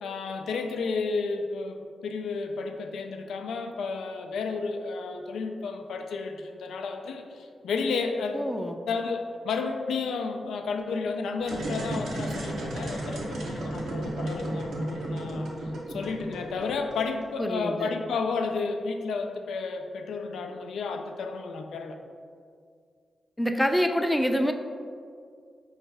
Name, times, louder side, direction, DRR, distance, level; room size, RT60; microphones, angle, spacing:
voice 1, 0.0-8.4 8.9-15.5 15.9-22.0, left 4 dB, 85° left, 5 dB, 0.3 m, -32 dB
voice 2, 8.3-8.8 17.4-17.9 23.4-24.5, equal, 10° left, 5 dB, 0.4 m, -26 dB
sound 1, 11.4-17.2, right 1 dB, 85° right, 0.8 m, -33 dB
4.7 x 3.1 x 3.4 m, 2.2 s
supercardioid pair, 50°, 0 cm